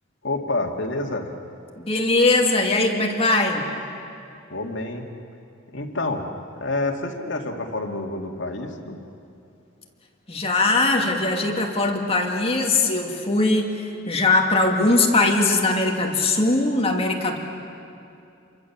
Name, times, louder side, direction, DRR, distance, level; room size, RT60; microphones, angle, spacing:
voice 1, 0.2-1.3 4.5-5.1 5.7-6.3 6.6-9.0, left 2 dB, 70° left, 2 dB, 2.3 m, -28 dB
voice 2, 1.8-3.7 10.3-17.4, left 2 dB, 30° left, 1 dB, 2.5 m, -21 dB
28.5 x 23.5 x 7.3 m, 2.6 s
head